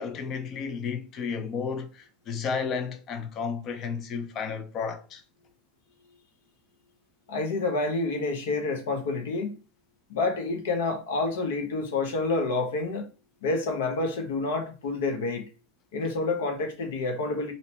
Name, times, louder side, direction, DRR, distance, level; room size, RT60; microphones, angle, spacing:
voice 1, 0.0-5.2, left 6 dB, 45° left, 0.5 m, -32 dB
voice 2, 7.3-9.5 10.1-13.1 13.4-15.5 15.9-17.5, left 3 dB, 80° left, 0.7 m, -28 dB
2.7 x 2.1 x 2.7 m
hypercardioid pair, 100°, 0 cm